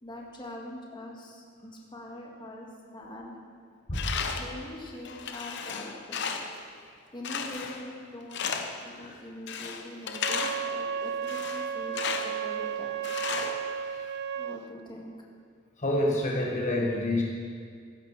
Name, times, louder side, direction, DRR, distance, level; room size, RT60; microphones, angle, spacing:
voice 1, 0.0-3.3 4.2-6.2 7.1-8.4 8.8-13.1 14.4-15.1, left 1 dB, 25° left, -2 dB, 1.8 m, -43 dB
Tools, 3.9-4.6 5.0-6.6 7.2-7.9 8.3-8.9 9.5-10.7 11.2-12.4 13.0-14.1, left 6 dB, 60° left, 0.9 m, -34 dB
Wind instrument woodwind instrument, 10.1-14.6, right 8 dB, 60° right, 0.4 m, -33 dB
voice 2, 15.8-17.2, left 1 dB, 40° left, -2 dB, 1.7 m, -27 dB
16.0 x 11.5 x 4.8 m, 2.2 s
head